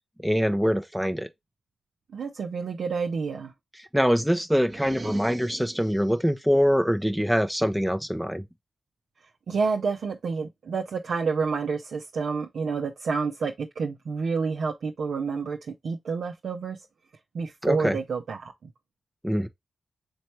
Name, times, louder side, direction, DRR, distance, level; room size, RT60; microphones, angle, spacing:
voice 1, 0.2-1.3 3.9-8.4 17.6-18.0 19.2-19.5, equal, ahead, 0.6 m, -24 dB
voice 2, 2.1-3.5 9.5-16.9 17.3-18.7, right 5 dB, 75° right, 0.6 m, -29 dB
sound 1, 4.6-6.2, right 3 dB, 45° right, 1.0 m, -40 dB
4.3 x 3.2 x 3.0 m
supercardioid pair, 45°, 0 cm